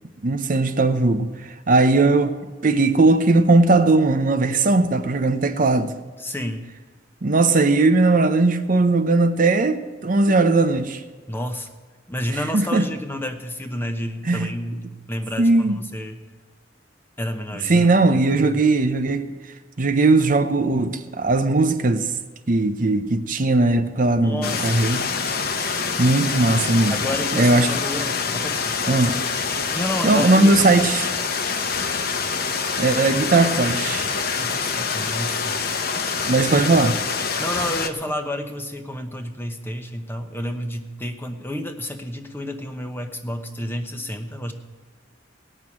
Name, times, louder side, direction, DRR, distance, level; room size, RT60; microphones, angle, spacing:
voice 1, 0.2-1.3 1.7-2.3 2.6-5.9 7.2-11.0 12.5-12.8 14.3-14.5 15.4-15.8 17.7-19.2 19.8-22.1 22.5-25.0 25.6-26.9 27.3-27.7 28.9-29.2 30.0-31.1 32.8-34.1 36.3-37.0, right 2 dB, 45° right, 0.7 m, -18 dB
voice 2, 6.2-6.7 11.3-11.7 12.1-16.2 17.2-18.6 24.2-24.9 26.9-28.8 29.7-30.6 31.7-31.8 34.4-35.6 37.4-44.5, left 1 dB, 10° left, 0.9 m, -30 dB
sound 1, 24.4-37.9, left 5 dB, 55° left, 0.9 m, -25 dB
18.0 x 6.2 x 8.6 m
head